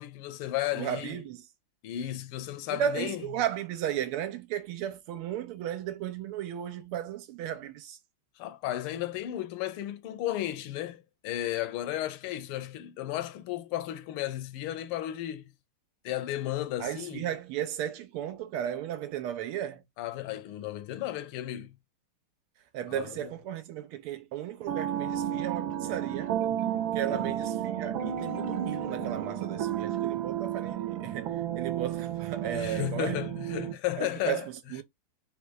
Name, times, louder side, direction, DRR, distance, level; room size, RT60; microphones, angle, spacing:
voice 1, 0.0-1.2 1.8-3.2 8.4-15.5 16.0-17.3 20.0-21.7 22.9-23.3 27.1-27.3 32.4-34.5, left 13 dB, 80° left, 1.5 m, -34 dB
voice 2, 0.7-1.4 2.7-8.0 16.8-19.8 22.7-26.4 26.9-33.2 34.0-34.8, right 10 dB, 90° right, 1.6 m, -35 dB
sound 1, 24.7-33.7, right 10 dB, 70° right, 1.4 m, -32 dB
Marimba xylophone, 25.5-30.7, right 5 dB, 45° right, 0.9 m, -46 dB
4.2 x 2.3 x 4.5 m
omnidirectional pair, 2.4 m